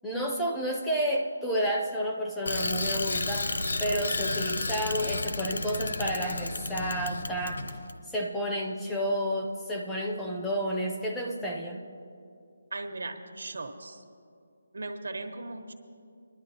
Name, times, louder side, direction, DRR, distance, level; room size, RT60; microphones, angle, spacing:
voice 1, 0.0-7.6 8.1-11.8, equal, 5° left, -1 dB, 0.4 m, -30 dB
Bicycle, 2.5-8.0, left 2 dB, 75° left, 0.8 m, -32 dB
voice 2, 12.7-14.0 14.7-15.7, right 2 dB, 75° right, 5 dB, 1.1 m, -38 dB
20.5 x 11.5 x 2.8 m, 2.5 s
hypercardioid pair, 175°, 0 cm